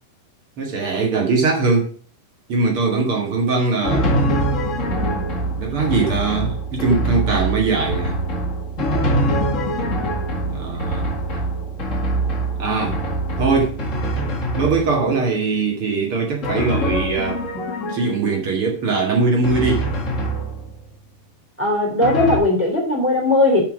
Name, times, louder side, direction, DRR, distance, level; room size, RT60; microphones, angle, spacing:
voice 1, 0.6-1.9 2.5-4.1 5.5-8.2 10.5-11.4 12.6-13.0 13.4-13.8 14.5-17.5 17.9-19.9, right 4 dB, 45° right, 2.1 m, -21 dB
Drum, 3.8-15.2 16.4-18.4 19.4-20.9 22.0-22.4, right 1 dB, 40° left, 1.1 m, -24 dB
voice 2, 21.6-23.6, left 2 dB, 5° right, 2.7 m, -18 dB
5.9 x 5.7 x 6.0 m
omnidirectional pair, 4.2 m